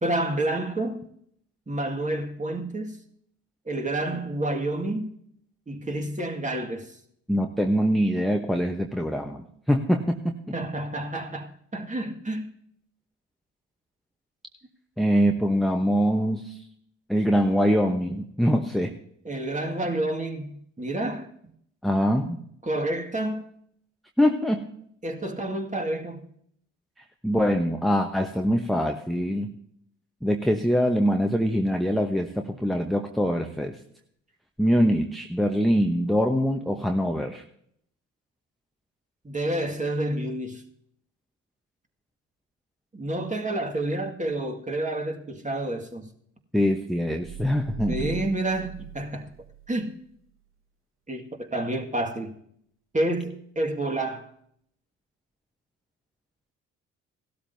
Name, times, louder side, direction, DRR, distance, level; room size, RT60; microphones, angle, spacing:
voice 1, 0.0-1.1 1.7-3.0 3.7-5.1 5.7-6.9 10.5-12.5 19.2-21.3 22.6-23.4 25.0-26.3 39.2-40.6 42.9-46.1 47.9-49.3 49.7-49.9 51.1-52.3 52.9-54.3, right 1 dB, 20° right, 2.0 m, -29 dB
voice 2, 7.3-10.4 15.0-16.6 17.1-18.9 21.8-22.4 24.2-24.6 27.2-29.5 30.2-33.8 34.6-37.4 46.5-48.1, equal, ahead, 1.0 m, -23 dB
sound 1, 47.2-49.9, right 7 dB, 35° right, 1.6 m, -40 dB
17.0 x 12.5 x 2.8 m
hypercardioid pair, 50°, 37 cm